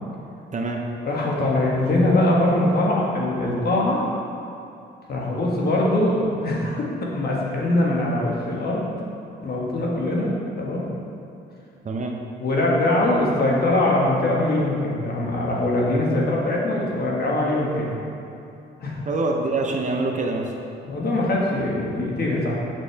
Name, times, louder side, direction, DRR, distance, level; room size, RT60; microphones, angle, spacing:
voice 1, 1.0-4.0 5.1-8.9 9.4-10.3 10.6-10.8 12.4-18.0 18.8-19.0 20.8-22.6, left 1 dB, 50° left, -3 dB, 1.6 m, -22 dB
voice 2, 11.8-12.2 19.1-20.5, right 2 dB, 40° right, 1 dB, 0.8 m, -25 dB
7.7 x 6.3 x 3.4 m, 2.7 s
cardioid pair, 90°, 20 cm